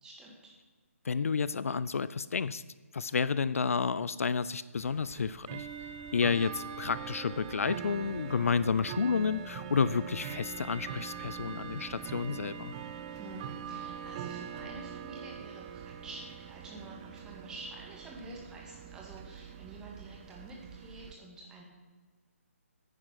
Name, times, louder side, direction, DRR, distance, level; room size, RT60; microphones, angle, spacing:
voice 1, 0.0-0.5 13.1-21.6, right 2 dB, 10° right, -2 dB, 2.2 m, -48 dB
voice 2, 1.0-2.6 2.9-5.7 6.1-12.7, left 5 dB, 70° left, 16 dB, 0.4 m, -30 dB
Bell / Tick-tock, 4.8-21.1, right 8 dB, 25° right, 0.6 m, -43 dB
9.7 x 9.5 x 5.8 m, 1.3 s
figure-of-eight pair, 150°, 8 cm